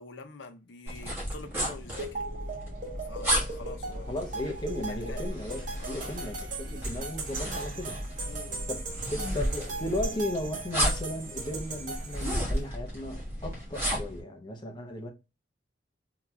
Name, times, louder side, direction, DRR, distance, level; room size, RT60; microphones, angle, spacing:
voice 1, 0.0-2.3 3.0-4.2 4.9-5.3 5.8-6.3 8.3-8.7, left 3 dB, 80° left, 0.6 m, -45 dB
sound 1, 0.9-14.2, equal, 15° right, 1.4 m, -34 dB
sound 2, 2.0-12.6, right 3 dB, 45° right, 1.1 m, -39 dB
sound 3, 2.3-11.0, left 1 dB, 85° right, 1.4 m, -44 dB
voice 2, 4.1-8.0 8.7-8.8 9.1-15.1, left 1 dB, 25° left, 0.7 m, -36 dB
3.8 x 2.8 x 2.3 m
head